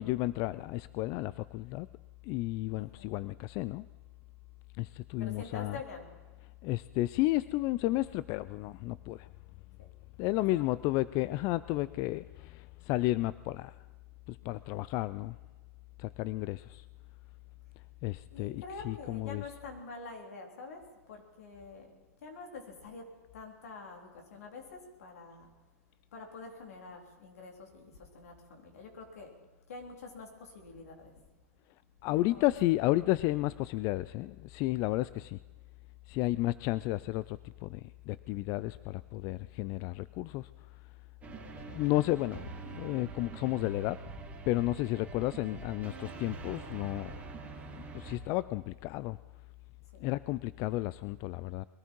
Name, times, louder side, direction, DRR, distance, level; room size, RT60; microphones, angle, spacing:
voice 1, 0.0-1.9 2.2-3.8 4.8-5.8 6.6-9.3 10.2-13.7 14.3-15.4 16.0-16.8 18.0-19.4 32.0-35.4 36.1-40.5 41.7-44.0 44.5-47.2 47.7-49.2 50.0-51.6, left 18 dB, 45° left, 17 dB, 0.4 m, -32 dB
voice 2, 2.7-3.1 5.2-6.1 9.8-9.9 10.5-10.6 18.3-21.9 22.2-23.1 23.3-25.5 26.1-29.3 29.7-31.1 32.1-32.5 49.9-50.0, left 4 dB, 80° left, 1 dB, 3.7 m, -46 dB
sound 1, 41.2-48.2, right 4 dB, 15° right, 2.8 m, -45 dB
21.5 x 13.5 x 4.6 m, 1.3 s
hypercardioid pair, 120°, 8 cm